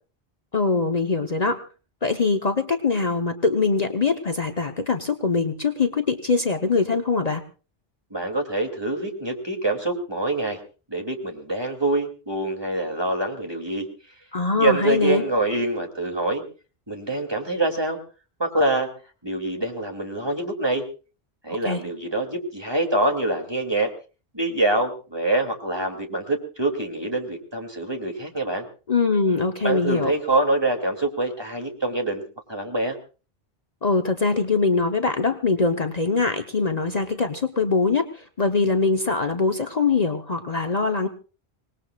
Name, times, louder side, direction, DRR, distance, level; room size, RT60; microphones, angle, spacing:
voice 1, 0.5-1.6 2.0-7.4 14.3-15.2 21.6-21.8 28.9-30.1 33.8-41.1, left 4 dB, 40° left, 5 dB, 1.1 m, -22 dB
voice 2, 8.1-10.6 10.9-13.9 14.6-16.4 16.9-18.0 18.4-18.9 19.2-20.9 21.4-23.9 24.3-28.7 29.6-32.2 32.5-33.0, right 2 dB, 25° right, 3 dB, 2.6 m, -25 dB
26.0 x 19.5 x 2.4 m, 0.35 s
omnidirectional pair, 1.0 m